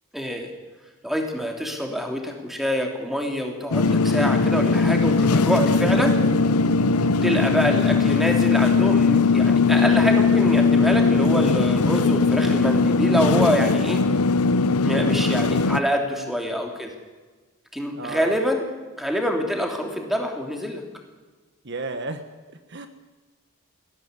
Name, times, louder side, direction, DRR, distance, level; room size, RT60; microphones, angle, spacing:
voice 1, 0.1-0.5 1.0-6.2 7.2-14.0 14.8-16.9 17.7-18.7 19.0-20.8, equal, ahead, 2 dB, 3.2 m, -25 dB
sound 1, 3.7-15.8, left 4 dB, 90° left, 0.8 m, -19 dB
voice 2, 7.3-7.7 16.2-16.4 17.9-18.4 21.6-22.9, right 3 dB, 50° right, 8 dB, 1.3 m, -35 dB
20.5 x 16.5 x 9.7 m, 1.3 s
head